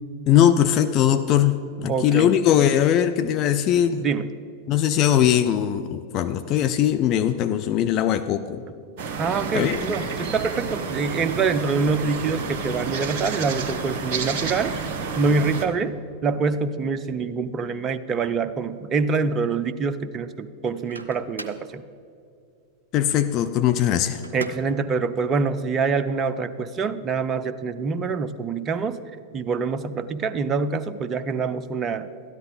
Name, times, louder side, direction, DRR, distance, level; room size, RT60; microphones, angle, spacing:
voice 1, 0.3-4.0 4.7-8.6 9.5-9.8 22.9-24.2, left 10 dB, 35° left, 10 dB, 0.4 m, -20 dB
voice 2, 1.9-2.3 4.0-4.3 9.2-14.9 15.2-16.0 16.2-21.8 24.3-29.0 29.3-32.1, right 4 dB, 25° right, 13 dB, 0.5 m, -25 dB
sound 1, 9.0-15.7, right 5 dB, 45° right, 1.0 m, -30 dB
Microwave oven, 20.7-21.7 24.2-24.8, right 2 dB, 75° right, 0.6 m, -39 dB
13.0 x 10.5 x 4.0 m, 2.4 s
figure-of-eight pair, 90°, 0 cm